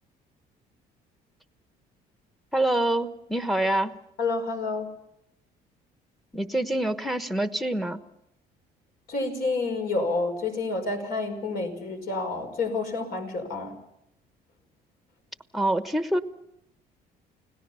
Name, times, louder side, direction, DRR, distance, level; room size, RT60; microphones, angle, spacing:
voice 1, 2.5-3.9 6.3-8.0 15.5-16.2, right 1 dB, ahead, 10 dB, 1.1 m, -26 dB
voice 2, 4.2-4.9 9.1-13.8, left 3 dB, 65° left, 4 dB, 5.4 m, -29 dB
29.5 x 18.0 x 5.7 m, 0.79 s
cardioid pair, 110°, 17 cm